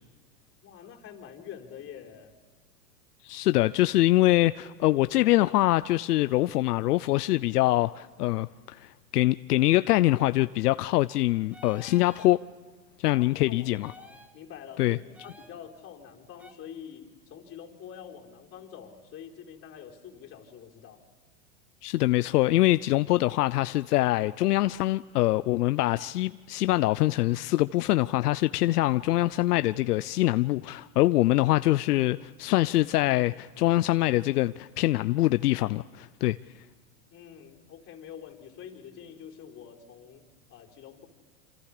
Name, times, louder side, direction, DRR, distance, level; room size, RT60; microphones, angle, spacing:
voice 1, 0.6-2.4 13.1-21.0 37.1-41.1, left 8 dB, 30° left, 4.3 m, -46 dB
voice 2, 3.2-12.4 13.0-13.9 14.8-15.0 21.8-36.4, left 17 dB, 80° left, 0.7 m, -24 dB
sound 1, 11.5-12.3 13.8-14.3 15.1-15.5 16.4-16.5, equal, 5° right, 1.6 m, -51 dB
28.0 x 27.5 x 5.0 m
supercardioid pair, 130°, 46 cm